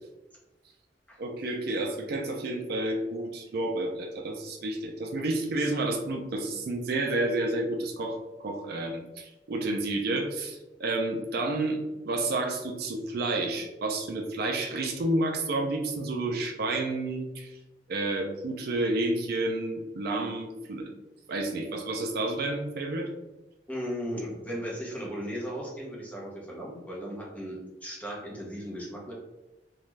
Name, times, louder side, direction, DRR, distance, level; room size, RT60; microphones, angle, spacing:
voice 1, 1.2-11.8 12.0-17.6 17.9-20.9 21.3-23.1, right 2 dB, 60° right, 3 dB, 0.4 m, -30 dB
voice 2, 23.7-29.1, equal, 10° left, -5 dB, 0.8 m, -36 dB
2.5 x 2.2 x 3.1 m, 1.0 s
head